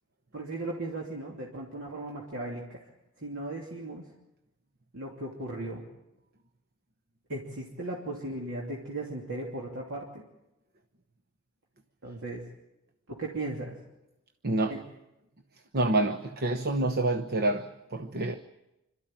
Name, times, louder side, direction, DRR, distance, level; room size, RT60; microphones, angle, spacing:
voice 1, 0.3-2.8 3.2-4.0 4.9-5.8 7.3-10.2 12.0-12.4 13.1-13.8 14.7-14.8, right 2 dB, 65° right, -3 dB, 3.0 m, -37 dB
voice 2, 14.4-14.8 15.7-18.4, right 2 dB, 50° right, 7 dB, 1.0 m, -27 dB
26.5 x 13.5 x 9.1 m, 0.94 s
head